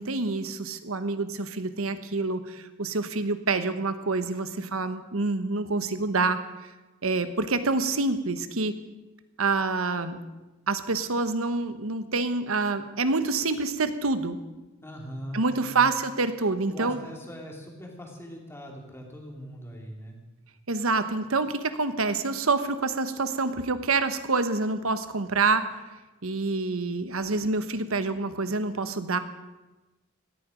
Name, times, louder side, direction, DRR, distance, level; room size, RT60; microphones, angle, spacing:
voice 1, 0.0-6.4 7.0-8.7 9.4-10.2 10.7-14.4 15.3-17.0 20.7-25.8 26.2-29.2, right 3 dB, 80° right, 11 dB, 1.2 m, -27 dB
voice 2, 14.8-15.8 16.7-20.2, equal, 10° left, 0 dB, 3.0 m, -41 dB
17.5 x 14.0 x 5.2 m, 1.1 s
head